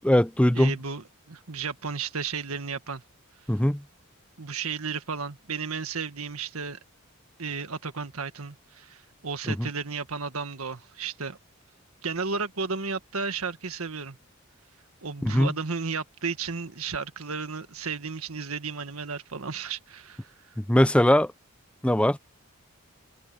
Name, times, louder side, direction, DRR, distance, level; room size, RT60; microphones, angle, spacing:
voice 1, 0.0-0.7 3.5-3.8 9.5-9.7 15.2-15.5 20.6-21.3 21.8-22.2, left 1 dB, 5° left, 0.6 m, -21 dB
voice 2, 0.5-3.0 4.4-6.8 7.4-11.4 12.0-14.2 15.0-20.3, right 5 dB, 85° right, 1.7 m, -33 dB
head